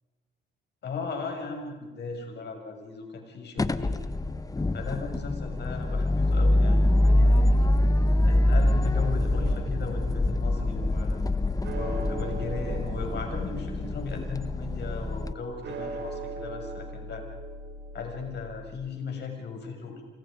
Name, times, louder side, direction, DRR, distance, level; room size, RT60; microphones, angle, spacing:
voice 1, 0.8-4.0 4.7-7.6 8.2-11.2 11.7-17.2 17.9-20.0, left 4 dB, 55° left, 3 dB, 7.0 m, -37 dB
sound 1, 3.6-15.3, left 1 dB, 15° left, 1.2 m, -25 dB
sound 2, 8.9-18.7, right 2 dB, 60° right, 5.5 m, -40 dB
29.0 x 28.5 x 5.3 m, 1.3 s
supercardioid pair, 65°, 21 cm